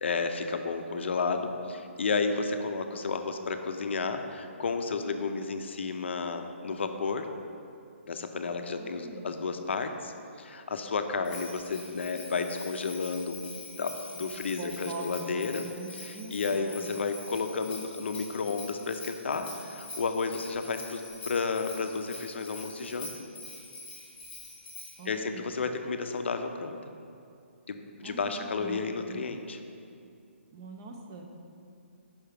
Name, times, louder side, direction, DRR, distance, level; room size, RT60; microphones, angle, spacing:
voice 1, 0.0-7.3 8.1-10.1 10.4-13.5 13.8-15.6 16.0-23.1 25.1-26.8 27.7-29.6, left 4 dB, 60° left, 7 dB, 0.5 m, -32 dB
voice 2, 8.8-9.4 14.5-17.0 25.0-25.5 28.0-29.3 30.5-31.2, right 3 dB, 15° right, 2 dB, 0.3 m, -43 dB
Bell, 11.2-25.1, left 3 dB, 15° left, 1.3 m, -45 dB
5.5 x 3.4 x 5.7 m, 2.5 s
hypercardioid pair, 175°, 7 cm